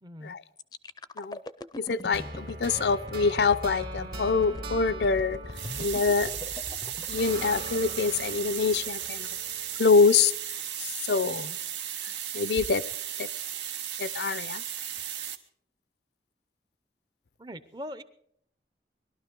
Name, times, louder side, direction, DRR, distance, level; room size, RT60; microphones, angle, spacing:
voice 1, 0.0-0.4 11.2-11.6 17.4-18.0, equal, 25° right, 0.7 m, -41 dB
sound 1, 0.6-10.4 10.9-11.1, left 2 dB, 20° left, 0.5 m, -42 dB
voice 2, 1.8-5.4 5.8-6.3 7.1-9.3 9.8-10.3 11.1-11.5 12.3-12.8 13.2-13.3 14.0-14.6, left 4 dB, 70° left, 0.5 m, -25 dB
sound 2, 2.1-6.7 7.1-10.2, right 2 dB, 55° right, 2.4 m, -42 dB
sound 3, 5.5-15.4, right 10 dB, 85° right, 1.1 m, -35 dB
21.0 x 12.5 x 5.2 m
head